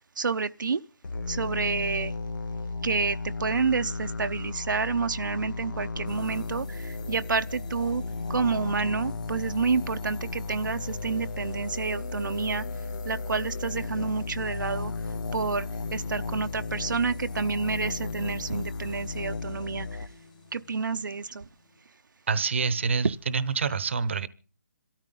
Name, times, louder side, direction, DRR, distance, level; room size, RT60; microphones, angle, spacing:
voice 1, 0.2-0.8 1.3-2.1 2.8-8.0 8.3-12.6 13.0-14.9 15.3-20.1 20.5-21.5, right 5 dB, 75° right, 0.8 m, -29 dB
sound 1, 1.0-20.1, left 4 dB, 85° left, 1.1 m, -35 dB
sound 2, 6.1-21.8, left 5 dB, 25° left, 0.9 m, -46 dB
voice 2, 22.3-24.3, right 5 dB, 40° right, 0.8 m, -27 dB
26.5 x 13.5 x 3.8 m
hypercardioid pair, 175°, 10 cm